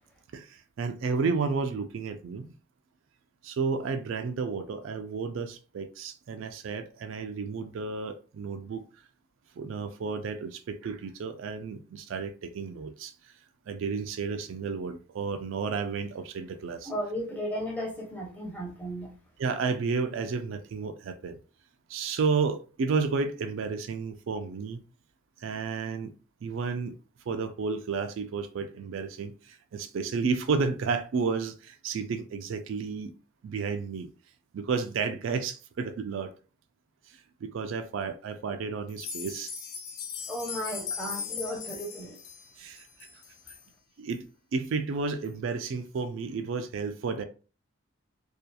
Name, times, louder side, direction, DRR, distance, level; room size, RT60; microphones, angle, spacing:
voice 1, 0.3-2.5 3.4-8.8 9.6-13.1 13.7-16.9 19.4-21.4 21.9-24.8 25.4-26.1 26.4-26.9 27.3-33.1 33.4-34.1 34.5-36.3 37.4-39.5 42.6-42.9 44.0-47.2, right 5 dB, 75° right, 0.3 m, -32 dB
voice 2, 16.8-19.1 40.3-42.2, equal, 10° left, 0.6 m, -35 dB
sound 1, 38.9-43.6 44.1-44.2 44.6-44.7 45.2-45.3, left 6 dB, 50° left, 0.5 m, -39 dB
2.7 x 2.3 x 2.2 m
head